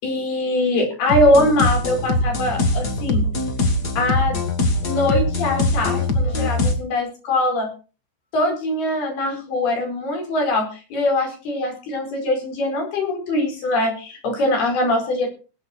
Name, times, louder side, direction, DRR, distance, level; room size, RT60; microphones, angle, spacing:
voice 1, 0.0-3.3 4.0-4.4 4.8-7.7 8.3-15.3, left 1 dB, 70° left, 3 dB, 7.1 m, -22 dB
sound 1, 1.1-6.7, left 2 dB, 45° left, 1.3 m, -22 dB
19.5 x 9.4 x 4.5 m, 0.35 s
omnidirectional pair, 4.7 m